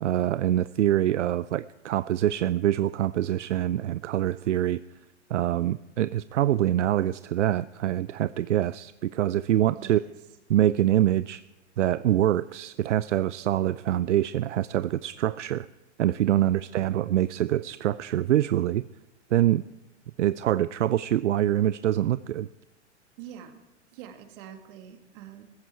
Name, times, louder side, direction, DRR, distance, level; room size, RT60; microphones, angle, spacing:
voice 1, 0.0-4.8 5.3-10.0 10.5-11.4 11.8-15.7 16.0-18.8 19.3-19.6 20.2-22.5, right 12 dB, 75° right, 16 dB, 0.5 m, -25 dB
voice 2, 16.2-16.7 23.2-23.6 23.9-25.4, right 10 dB, 45° right, 6 dB, 2.3 m, -44 dB
16.0 x 14.5 x 4.5 m, 1.1 s
hypercardioid pair, 105°, 36 cm